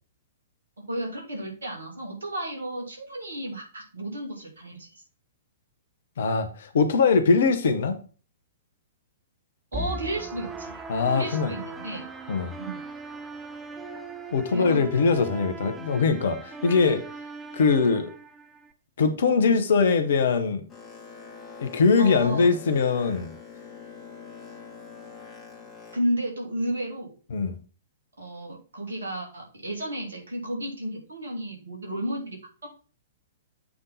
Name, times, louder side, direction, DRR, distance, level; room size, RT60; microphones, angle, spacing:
voice 1, 0.9-4.9 9.7-10.8 11.1-12.0 12.6-12.8 14.5-14.8 16.6-16.7 22.0-22.5 25.9-27.1 28.2-32.4 32.6-32.7, right 1 dB, 70° right, 0 dB, 2.6 m, -32 dB
voice 2, 6.2-8.0 10.9-11.5 12.3-12.5 14.3-17.0 17.5-18.1 19.0-20.6 21.6-23.3 27.3-27.6, left 4 dB, 60° left, 8 dB, 1.0 m, -22 dB
sound 1, 9.7-18.7, right 3 dB, 10° right, 0.8 m, -39 dB
Boat Water vehicle, 20.7-26.0, left 5 dB, 20° left, 2.1 m, -44 dB
8.5 x 3.8 x 4.0 m, 0.37 s
figure-of-eight pair, 110°, 0 cm